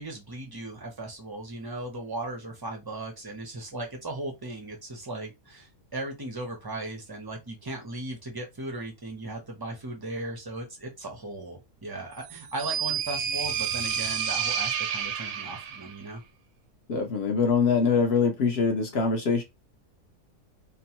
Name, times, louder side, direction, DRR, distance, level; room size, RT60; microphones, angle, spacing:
voice 1, 0.0-16.2, right 2 dB, 30° right, 0.4 m, -37 dB
sound 1, 12.2-15.9, right 8 dB, 70° right, 0.8 m, -30 dB
voice 2, 16.9-19.4, left 5 dB, 60° left, 0.7 m, -23 dB
2.9 x 2.1 x 2.8 m
omnidirectional pair, 1.5 m